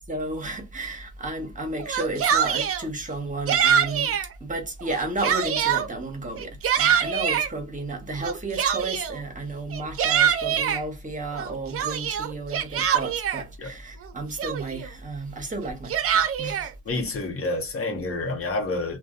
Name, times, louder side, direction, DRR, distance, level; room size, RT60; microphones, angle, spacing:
voice 1, 0.1-16.7, right 2 dB, 25° right, 1.0 m, -32 dB
Yell, 1.8-2.8 3.5-4.3 4.8-5.9 6.4-7.5 8.2-9.2 9.7-10.8 11.3-13.4 14.0-14.1 14.4-14.9 15.6-16.7, right 8 dB, 50° right, 0.5 m, -24 dB
voice 2, 16.9-19.0, left 2 dB, 50° left, 0.9 m, -28 dB
2.5 x 2.2 x 2.3 m
cardioid pair, 90°, 30 cm